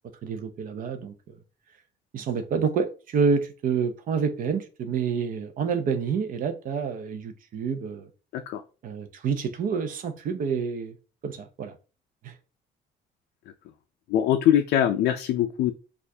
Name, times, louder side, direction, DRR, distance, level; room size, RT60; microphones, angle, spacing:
voice 1, 0.2-1.4 2.1-8.1 8.8-11.0 11.2-11.8 12.2-12.3, right 6 dB, 55° right, 0.6 m, -28 dB
voice 2, 14.1-15.7, left 10 dB, 70° left, 0.4 m, -22 dB
4.3 x 2.5 x 2.7 m
cardioid pair, 110°, 17 cm